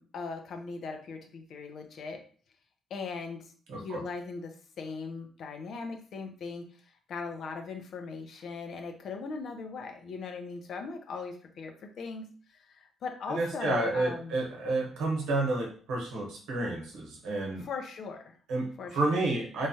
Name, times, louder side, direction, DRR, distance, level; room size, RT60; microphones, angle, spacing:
voice 1, 0.0-2.2 2.9-3.4 3.7-6.6 7.1-12.3 12.7-14.3 17.6-18.3 18.8-19.0, left 4 dB, 65° left, 5 dB, 0.5 m, -39 dB
voice 2, 3.7-4.0 13.3-17.7 18.5-19.7, right 2 dB, 90° right, -1 dB, 0.9 m, -30 dB
3.1 x 2.2 x 2.7 m, 0.44 s
cardioid pair, 90°, 0 cm